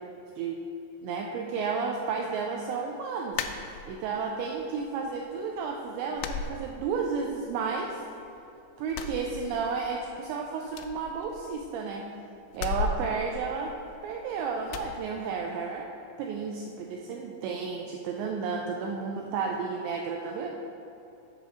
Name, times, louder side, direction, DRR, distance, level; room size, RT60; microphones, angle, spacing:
voice 1, 1.0-8.0 8.8-12.1 12.5-13.8 14.0-15.9 16.2-20.5, right 5 dB, 85° right, 1 dB, 2.5 m, -32 dB
sound 1, 3.3-4.2 4.6-5.3 5.6-5.7 6.2-7.3 7.6-8.4 8.8-10.0 10.3-10.4 10.7-11.9 12.5-14.2 14.7-15.0, left 5 dB, 85° left, 2.9 m, -36 dB
8.0 x 6.7 x 4.9 m, 2.9 s
omnidirectional pair, 5.5 m